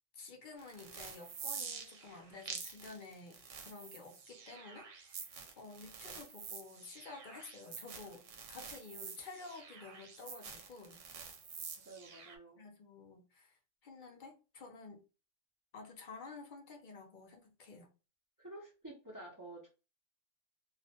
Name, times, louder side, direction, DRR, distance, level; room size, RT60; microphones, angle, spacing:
voice 1, 0.1-5.3 5.6-11.0 12.6-15.0 15.7-17.9, left 4 dB, 55° left, 0.6 m, -51 dB
sound 1, 0.6-12.4, right 6 dB, 80° right, 1.0 m, -48 dB
voice 2, 11.8-12.6 18.4-19.7, right 1 dB, 20° right, 0.5 m, -50 dB
2.4 x 2.1 x 2.7 m
omnidirectional pair, 1.3 m